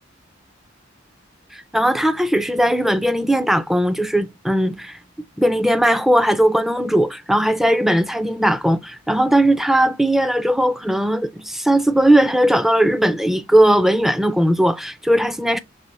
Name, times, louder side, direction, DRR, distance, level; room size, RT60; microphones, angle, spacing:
voice 1, 1.5-5.0 5.4-15.6, right 1 dB, ahead, 0.3 m, -18 dB
5.5 x 3.2 x 3.0 m
head